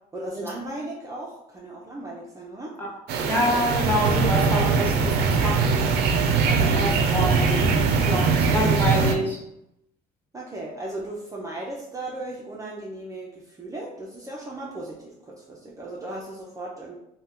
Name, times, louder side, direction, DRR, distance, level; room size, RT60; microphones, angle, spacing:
voice 1, 0.1-2.7 10.3-16.9, right 2 dB, 20° right, -3 dB, 0.5 m, -36 dB
sound 1, 3.1-9.1, right 4 dB, 75° right, 0.4 m, -21 dB
voice 2, 3.3-5.1 5.4-6.0 6.4-6.5 6.8-7.7 8.0-9.4, equal, 10° left, -3 dB, 0.8 m, -27 dB
2.7 x 2.2 x 3.5 m, 0.83 s
cardioid pair, 110°, 17 cm